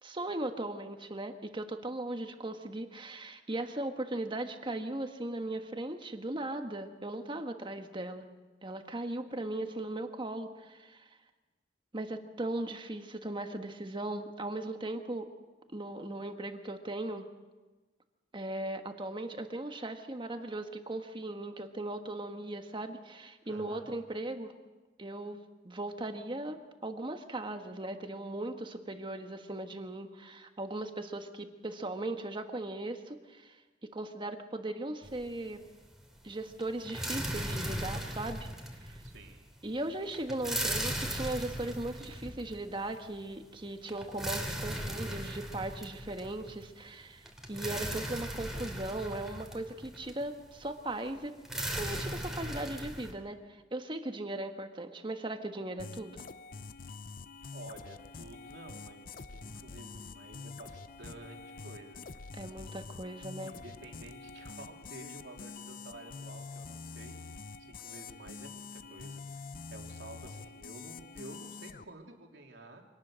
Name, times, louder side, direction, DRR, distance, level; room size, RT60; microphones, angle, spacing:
voice 1, 0.0-8.3 8.6-11.1 11.9-15.3 15.7-17.3 18.3-24.5 25.0-25.4 25.6-33.6 33.8-35.6 36.2-38.5 38.8-39.0 39.6-51.3 51.7-56.2 62.3-63.6, right 1 dB, 30° right, 6 dB, 1.5 m, -38 dB
voice 2, 23.5-23.9 39.0-39.5 57.5-62.0 63.4-67.2 67.6-72.8, right 2 dB, 85° right, 2 dB, 3.1 m, -51 dB
sound 1, 35.0-35.7 35.9-53.1, right 1 dB, 5° right, 2.8 m, -38 dB
sound 2, 55.8-71.8, left 4 dB, 55° left, 0.7 m, -46 dB
25.0 x 18.5 x 6.4 m, 1.2 s
head